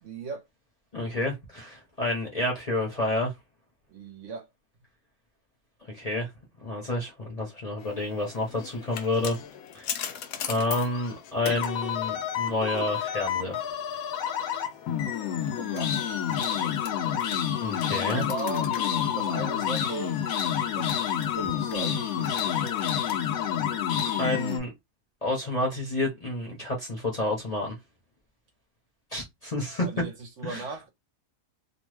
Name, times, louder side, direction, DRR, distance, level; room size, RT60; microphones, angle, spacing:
voice 1, 0.0-0.5 3.9-4.5 15.3-16.0 18.1-20.2 20.7-21.0 21.3-22.6 29.8-30.9, right 4 dB, 60° right, 1.0 m, -38 dB
voice 2, 0.9-3.3 5.9-6.3 6.6-9.4 9.7-13.6 17.6-18.2 24.2-24.7 25.2-27.8 29.1-29.9 30.4-30.6, left 1 dB, 35° left, 0.8 m, -29 dB
sound 1, 8.3-24.6, left 9 dB, 80° left, 1.0 m, -29 dB
2.9 x 2.2 x 3.2 m
omnidirectional pair, 1.5 m